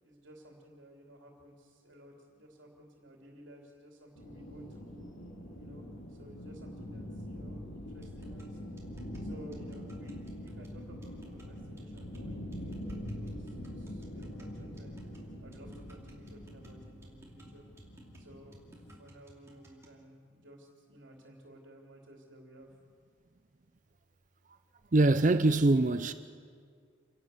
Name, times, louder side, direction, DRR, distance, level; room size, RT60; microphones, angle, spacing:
voice 1, 0.0-5.1 5.5-5.8 6.1-8.8 9.2-15.0 15.4-17.6 18.2-22.7, equal, 70° right, 3.0 m, -55 dB
sound 1, 4.2-19.0, equal, 85° left, 3.8 m, -44 dB
sound 2, 8.0-20.0, equal, 15° right, 2.6 m, -58 dB
voice 2, 24.9-26.1, right 2 dB, 40° right, 0.5 m, -23 dB
28.0 x 12.0 x 8.2 m
head